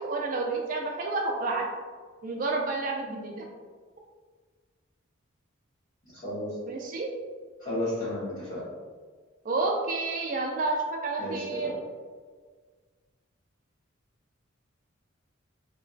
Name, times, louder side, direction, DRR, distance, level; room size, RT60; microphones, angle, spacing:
voice 1, 0.0-1.7 2.2-3.4 6.7-7.1 9.4-11.7, right 3 dB, 40° right, 1 dB, 0.3 m, -30 dB
voice 2, 6.1-6.6 7.6-8.7 11.2-11.7, left 1 dB, 35° left, -16 dB, 1.4 m, -33 dB
3.1 x 2.9 x 2.6 m, 1.5 s
head